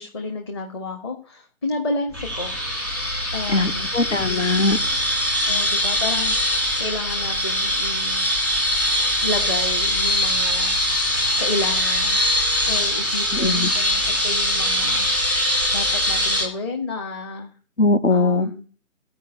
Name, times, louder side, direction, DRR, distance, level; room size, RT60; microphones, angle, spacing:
voice 1, 0.0-2.5 3.3-3.9 5.5-6.3 6.8-8.2 9.2-11.1 11.4-12.2 12.7-15.1 15.7-17.5 18.1-18.7, left 2 dB, 20° left, 2 dB, 1.5 m, -31 dB
sound 1, 2.1-16.4, left 1 dB, 5° left, 1.6 m, -22 dB
voice 2, 3.5-4.8 13.4-13.7 17.8-18.5, left 3 dB, 60° left, 9 dB, 1.9 m, -20 dB
14.5 x 5.4 x 9.7 m, 0.40 s
figure-of-eight pair, 155°, 41 cm